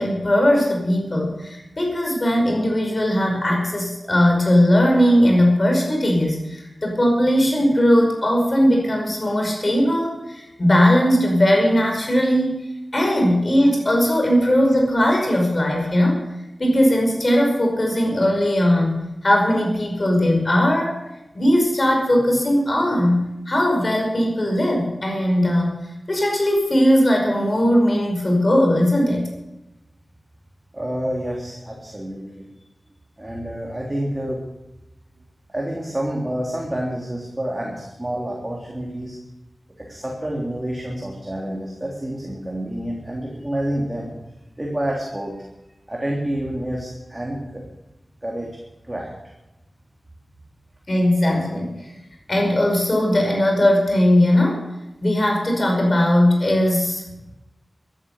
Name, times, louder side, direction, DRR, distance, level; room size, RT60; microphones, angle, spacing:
voice 1, 0.0-16.2 16.6-21.0 21.3-25.7 26.1-29.3 50.9-51.8 52.3-54.7 55.0-57.0, equal, 40° left, 1 dB, 5.1 m, -19 dB
voice 2, 30.7-32.5 33.2-34.4 35.5-39.2 39.8-44.1 44.6-45.4 45.9-47.6 48.2-48.5 48.8-49.1, right 1 dB, 20° right, -3 dB, 3.3 m, -28 dB
14.5 x 11.0 x 6.6 m, 0.96 s
wide cardioid pair, 70°, 0 cm